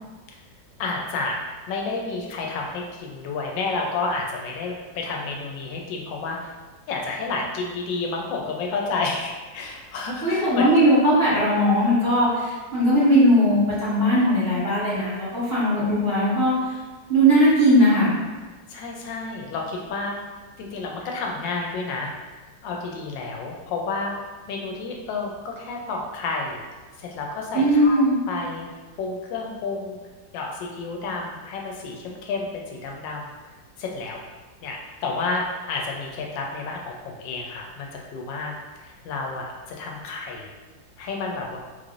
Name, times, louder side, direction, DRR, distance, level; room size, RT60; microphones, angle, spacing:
voice 1, 0.8-1.4 1.7-6.5 6.9-10.6 18.7-20.2 20.6-22.1 22.6-24.1 24.5-26.6 27.0-28.7 29.0-30.0 30.3-33.3 33.8-34.2 34.6-38.5 38.8-40.5 41.0-41.6, left 3 dB, 85° left, 0 dB, 1.3 m, -30 dB
voice 2, 10.2-16.5 17.1-18.1 27.5-28.2, equal, 40° right, -10 dB, 1.1 m, -19 dB
4.0 x 3.2 x 2.5 m, 1.3 s
omnidirectional pair, 2.0 m